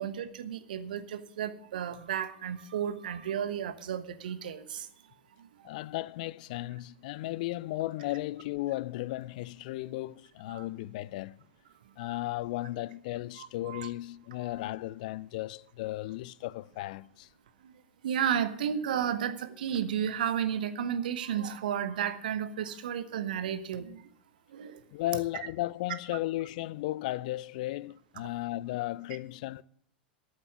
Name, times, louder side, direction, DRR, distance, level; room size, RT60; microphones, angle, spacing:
voice 1, 0.0-4.9 10.5-10.7 12.0-12.1 13.4-13.9 17.6-17.7 18.0-24.0 24.5-24.8, right 9 dB, 60° right, 1.2 m, -33 dB
voice 2, 5.6-11.4 12.0-17.3 24.9-29.6, left 17 dB, 50° left, 0.4 m, -35 dB
13.0 x 7.4 x 9.4 m
figure-of-eight pair, 85°, 5 cm